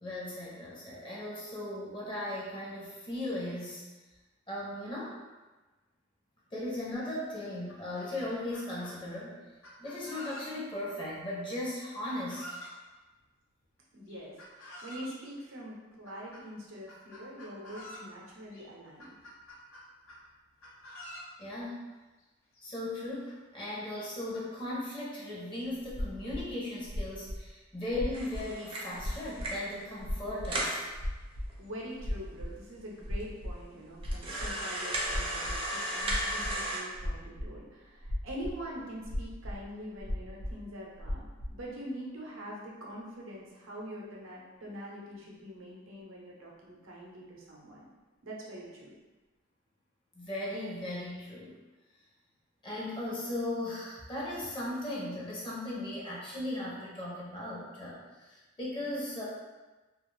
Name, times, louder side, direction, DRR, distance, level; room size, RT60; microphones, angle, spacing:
voice 1, 0.0-3.8 4.5-5.2 6.5-9.3 9.8-12.4 21.4-21.8 22.6-30.8 50.1-51.5 52.6-58.0 58.2-59.2, left 1 dB, 25° left, -6 dB, 0.6 m, -37 dB
Chicken rooster, 7.0-7.1 7.5-9.0 9.6-10.8 12.1-12.8 14.1-15.2 16.0-16.4 16.9-18.1 18.5-18.6 19.0-20.2 20.6-21.3 22.2-22.3 22.5-22.6 23.3-23.4 23.9-24.4, equal, 85° left, 0.6 m, -48 dB
voice 2, 13.9-19.1 31.6-47.9 48.2-48.9, equal, 75° right, -3 dB, 0.6 m, -44 dB
sound 1, 25.8-26.5 26.8-27.4 27.9-28.5 28.9-29.7 30.0-31.5 32.0-32.5 32.8-33.5 34.0-34.5 35.0-35.6 36.0-36.6 36.9-37.6 38.0-38.5 38.8-39.6 40.0-40.5 41.0-41.6, left 1 dB, 70° left, 1.0 m, -35 dB
sound 2, 28.1-29.7 30.1-30.2 30.4-30.8 31.5-31.6 31.8-31.9 32.6-32.7 33.2-33.3 34.0-36.8, right 1 dB, 25° right, 0.5 m, -35 dB
2.3 x 2.3 x 3.1 m, 1.2 s
head